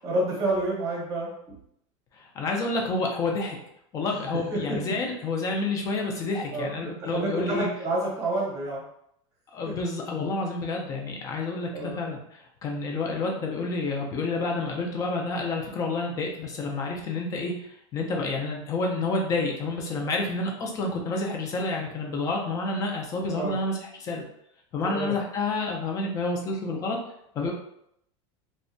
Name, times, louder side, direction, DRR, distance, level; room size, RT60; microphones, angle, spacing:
voice 1, 0.0-1.3 4.5-4.8 6.5-8.8 9.6-9.7 11.7-12.0 23.2-23.6 24.8-25.2, right 1 dB, 20° right, -3 dB, 0.8 m, -29 dB
voice 2, 2.2-3.6 3.9-7.7 9.5-24.2 24.7-27.0 27.4-27.5, left 3 dB, 20° left, 1 dB, 0.4 m, -29 dB
2.6 x 2.1 x 2.6 m, 0.73 s
supercardioid pair, 165°, 16 cm